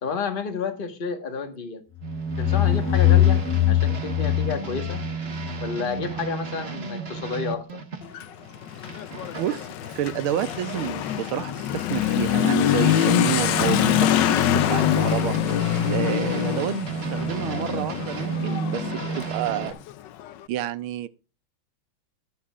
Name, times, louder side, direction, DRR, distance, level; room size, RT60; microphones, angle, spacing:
voice 1, 0.0-1.8 2.4-3.4 3.7-5.0 5.6-7.8, left 5 dB, 30° left, 1.4 m, -30 dB
sound 1, 2.0-5.6, left 13 dB, 5° left, 1.2 m, -21 dB
sound 2, 2.0-11.5 11.9-19.7, right 5 dB, 35° right, 1.4 m, -33 dB
Motorcycle / Accelerating revving vroom, 8.0-20.3, left 12 dB, 70° left, 1.2 m, -25 dB
voice 2, 9.4-15.4 15.9-19.8 20.5-21.1, right 12 dB, 80° right, 1.5 m, -29 dB
22.5 x 7.5 x 2.4 m
omnidirectional pair, 2.3 m